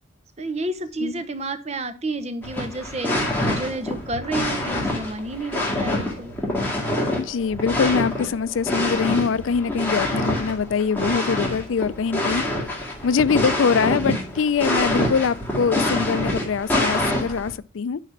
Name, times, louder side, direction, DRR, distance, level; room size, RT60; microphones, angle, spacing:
voice 1, 0.4-6.3, right 2 dB, 35° right, 0.8 m, -30 dB
sound 1, 2.4-17.5, left 1 dB, 10° left, 2.1 m, -26 dB
voice 2, 7.1-12.4 13.0-18.0, left 6 dB, 75° left, 0.4 m, -23 dB
9.1 x 4.1 x 5.7 m
head